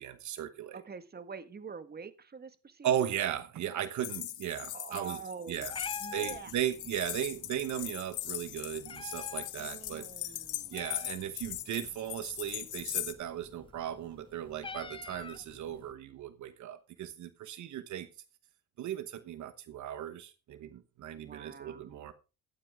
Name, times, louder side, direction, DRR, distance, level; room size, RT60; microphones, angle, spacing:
voice 1, 0.0-0.8 2.8-5.2 5.5-5.7 6.1-10.1 10.7-18.1 18.8-22.1, right 10 dB, 75° right, 12 dB, 1.2 m, -36 dB
voice 2, 0.7-3.2 4.7-5.7 6.0-6.5 9.6-10.7 21.1-22.1, right 5 dB, 30° right, 11 dB, 1.6 m, -45 dB
sound 1, 4.0-13.1, left 13 dB, 80° left, 1.4 m, -40 dB
Meow, 5.5-15.9, left 4 dB, 15° left, 0.5 m, -48 dB
14.5 x 9.9 x 3.6 m, 0.31 s
cardioid pair, 90°, 30 cm